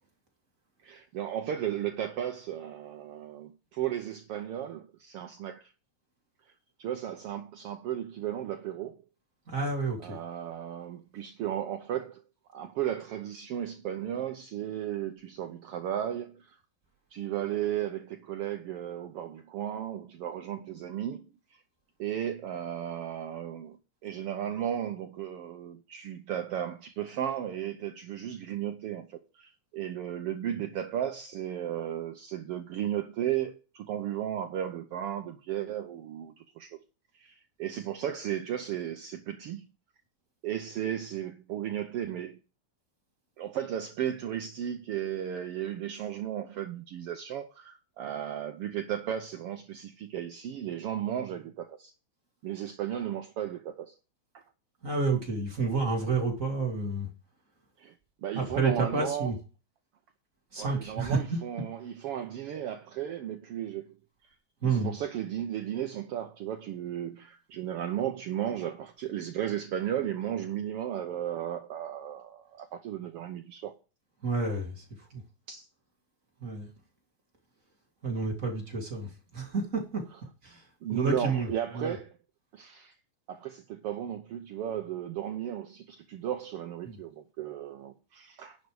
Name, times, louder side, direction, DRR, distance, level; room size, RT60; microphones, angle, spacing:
voice 1, 0.8-5.7 6.5-6.6 6.8-9.0 10.0-12.2 12.5-16.6 17.1-21.6 22.0-36.8 37.1-39.7 40.4-42.4 43.4-51.9 52.4-54.0 54.3-54.4 57.8-57.9 58.2-59.3 60.6-64.0 64.6-73.7 75.5-75.7 80.8-82.1 82.5-82.9 83.3-88.6, right 10 dB, 85° right, 1.3 m, -35 dB
voice 2, 9.5-10.2 54.8-57.1 58.3-59.4 60.5-61.4 64.6-64.9 74.2-74.8 75.1-75.2 76.4-76.7 78.0-80.0 80.4-80.6 80.9-81.5 81.7-82.0 86.8-87.0, right 4 dB, 30° right, 2.2 m, -29 dB
11.0 x 6.6 x 4.8 m
omnidirectional pair, 3.5 m